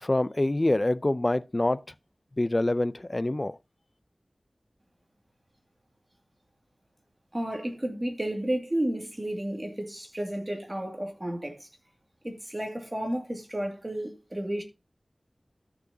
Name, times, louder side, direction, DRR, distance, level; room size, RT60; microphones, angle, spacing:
voice 1, 0.0-1.8 2.4-3.6, left 1 dB, 35° left, 0.5 m, -26 dB
voice 2, 7.3-11.7 12.2-14.6, right 1 dB, 25° right, 2.2 m, -32 dB
13.5 x 6.2 x 2.8 m
wide cardioid pair, 65°, 0 cm